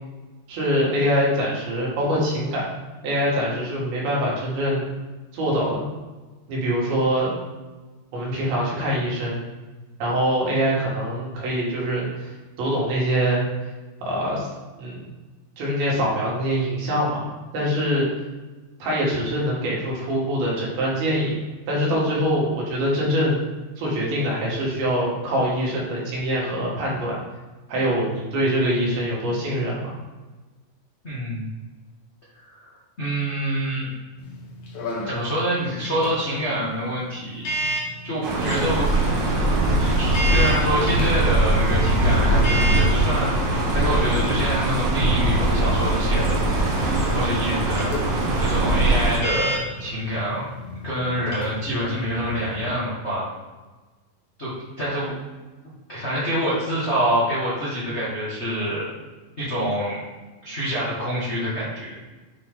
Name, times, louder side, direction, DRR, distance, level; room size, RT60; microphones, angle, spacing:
voice 1, 0.5-2.7 3.0-4.8 5.3-5.8 6.5-7.3 8.1-9.4 10.0-13.4 14.0-14.5 14.8-15.1 15.6-17.3 17.5-18.1 18.8-21.4 21.7-23.5 23.8-27.2 27.7-29.9, equal, 85° right, -5 dB, 3.7 m, -24 dB
voice 2, 31.0-31.5 32.3-32.7 33.0-33.9 35.1-37.7 38.0-38.9 39.7-43.3 43.7-46.4 47.1-47.9 48.4-50.5 50.8-53.2 54.4-54.5 54.8-55.1 55.9-58.9 59.4-60.0 60.4-62.0, equal, 80° left, -10 dB, 0.6 m, -26 dB
sound 1, 34.2-52.7, equal, 60° left, 2.4 m, -33 dB
sound 2, 38.2-49.2, right 1 dB, 65° right, 1.5 m, -21 dB
8.1 x 3.9 x 3.6 m, 1.2 s
omnidirectional pair, 4.2 m